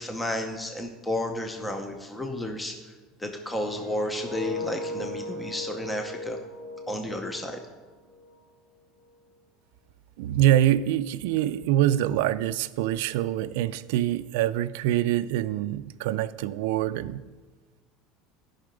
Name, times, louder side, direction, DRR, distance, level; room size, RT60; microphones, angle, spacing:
voice 1, 0.0-2.7 3.2-6.4 6.9-7.6, left 1 dB, 5° left, 4 dB, 0.7 m, -32 dB
sound 1, 3.3-8.4 8.7-9.0, left 2 dB, 50° left, 1.6 m, -38 dB
voice 2, 10.2-17.2, right 12 dB, 75° right, 14 dB, 0.4 m, -25 dB
15.0 x 5.7 x 5.2 m, 1.3 s
cardioid pair, 160°, 0 cm